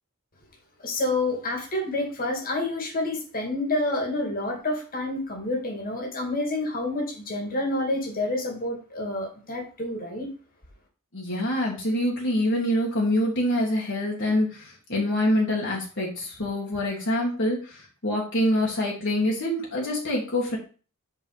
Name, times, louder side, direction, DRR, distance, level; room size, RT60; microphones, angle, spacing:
voice 1, 0.8-10.3, left 2 dB, 40° left, 1 dB, 2.3 m, -28 dB
voice 2, 11.1-20.6, left 1 dB, 60° left, -3 dB, 2.0 m, -25 dB
5.4 x 4.9 x 6.4 m, 0.37 s
head